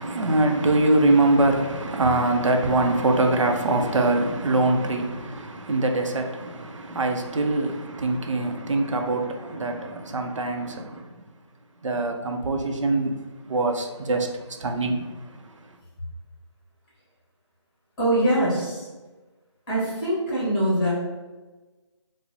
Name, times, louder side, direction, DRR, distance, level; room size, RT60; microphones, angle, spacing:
voice 1, 0.0-11.1 11.8-13.1 13.5-14.3 14.6-15.0, right 2 dB, 85° right, 0.5 m, -23 dB
voice 2, 18.0-18.9 19.7-20.9, right 1 dB, 15° left, 1.2 m, -23 dB
4.5 x 2.0 x 2.7 m
figure-of-eight pair, 160°, 16 cm